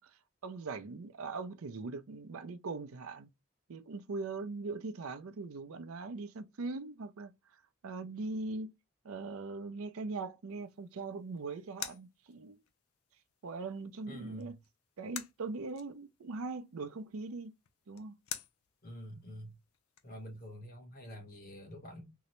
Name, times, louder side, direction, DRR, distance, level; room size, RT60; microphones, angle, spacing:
voice 1, 0.0-3.3 3.7-7.3 7.8-8.7 9.0-12.6 13.4-14.5 15.0-17.5 17.9-18.2, right 3 dB, 80° right, 0.5 m, -41 dB
sound 1, 10.5-20.6, left 10 dB, 85° left, 0.5 m, -50 dB
voice 2, 14.1-14.6 18.8-19.5 20.0-22.1, equal, 45° left, 1.3 m, -47 dB
3.8 x 2.1 x 3.0 m
head